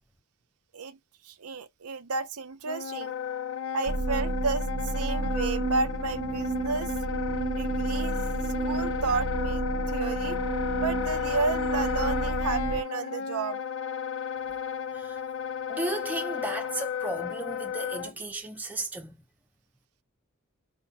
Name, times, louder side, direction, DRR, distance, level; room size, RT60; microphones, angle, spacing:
voice 1, 1.2-3.1 3.7-6.9 7.5-8.2 8.6-10.4 10.8-13.6, right 4 dB, 85° right, 0.6 m, -32 dB
Wind instrument woodwind instrument, 2.6-18.1, left 8 dB, 60° left, 0.5 m, -33 dB
sound 1, 3.9-12.8, right 3 dB, 40° right, 0.4 m, -31 dB
voice 2, 15.7-19.2, right 2 dB, 10° right, 0.7 m, -35 dB
4.9 x 2.2 x 4.1 m
head